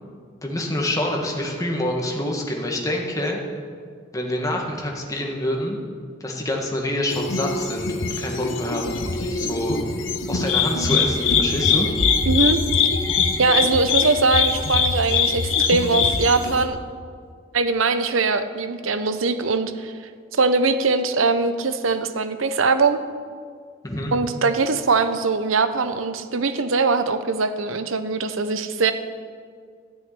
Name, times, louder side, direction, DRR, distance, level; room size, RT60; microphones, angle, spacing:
voice 1, 0.4-3.4 4.1-5.8 6.2-9.8 10.3-11.9 23.8-24.1, left 1 dB, 15° left, 1 dB, 1.6 m, -26 dB
sound 1, 7.1-16.7, left 5 dB, 80° left, 1.1 m, -22 dB
voice 2, 12.3-12.6 13.4-16.8 17.5-19.9 20.3-23.0 24.1-28.9, right 4 dB, 85° right, 10 dB, 0.8 m, -21 dB
13.0 x 6.5 x 9.8 m, 2.1 s
head